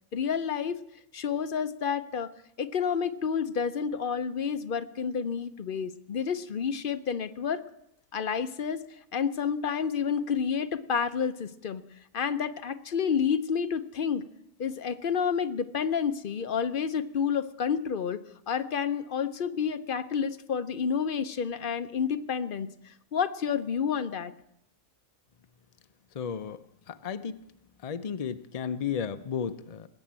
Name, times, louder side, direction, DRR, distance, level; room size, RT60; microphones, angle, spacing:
voice 1, 0.1-0.8 1.1-2.3 2.6-7.6 8.1-8.8 9.1-11.8 12.1-14.2 14.6-18.2 18.5-24.3, left 7 dB, 50° left, 10 dB, 0.7 m, -29 dB
voice 2, 26.1-26.6 26.9-27.4 27.8-29.9, left 7 dB, 90° left, 10 dB, 0.3 m, -33 dB
19.5 x 7.8 x 8.7 m, 0.79 s
omnidirectional pair, 1.6 m